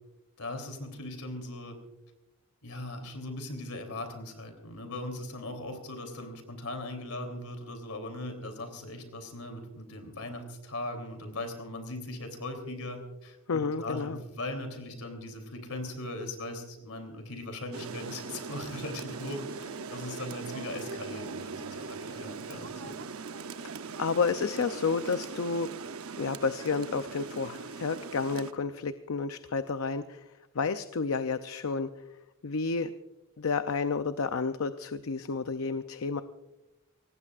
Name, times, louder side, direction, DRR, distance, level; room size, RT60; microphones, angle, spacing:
voice 1, 0.4-1.8 2.6-22.9, left 1 dB, 85° left, 6 dB, 3.3 m, -39 dB
voice 2, 13.5-14.2 23.6-23.7 24.0-25.7 26.2-30.3 30.5-31.9 32.4-32.9 33.4-36.2, left 4 dB, 70° left, 10 dB, 0.6 m, -30 dB
Rain, 17.7-28.5, right 4 dB, 75° right, 0.7 m, -40 dB
25.0 x 19.0 x 2.5 m, 0.97 s
head